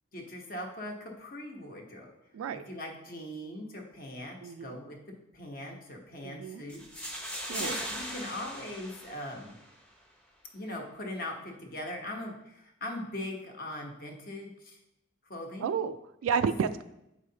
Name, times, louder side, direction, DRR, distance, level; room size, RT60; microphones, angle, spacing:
voice 1, 0.1-2.1 2.7-5.0 5.3-6.8 7.2-9.6 10.5-14.8 15.3-15.7, left 1 dB, 45° left, 1 dB, 1.0 m, -40 dB
voice 2, 2.3-2.6 4.4-4.8 6.2-6.6 7.5-7.8 15.6-16.0 16.2-16.8, right 6 dB, 85° right, 10 dB, 0.3 m, -31 dB
sound 1, 6.7-9.7, equal, 5° left, 0.7 m, -39 dB
7.4 x 4.8 x 2.8 m, 0.86 s
head